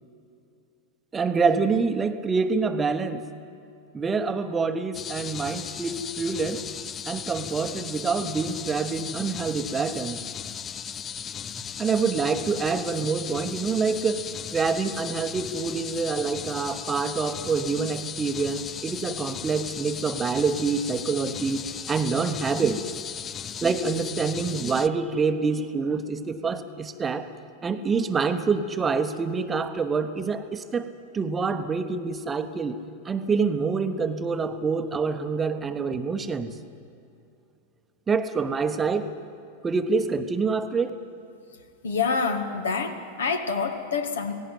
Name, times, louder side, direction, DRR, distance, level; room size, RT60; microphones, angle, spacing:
voice 1, 1.1-3.2 3.9-6.6 7.1-10.3 11.4-11.5 11.8-14.3 14.5-22.8 23.6-27.3 27.6-32.8 33.0-36.6 38.1-39.1 39.6-40.9, right 4 dB, 15° right, 9 dB, 1.0 m, -26 dB
sound 1, 4.9-24.9, left 8 dB, 25° left, 0.5 m, -36 dB
voice 2, 41.8-44.3, left 5 dB, 65° left, 6 dB, 1.6 m, -27 dB
18.0 x 17.5 x 9.5 m, 2.6 s
figure-of-eight pair, 90°, 0 cm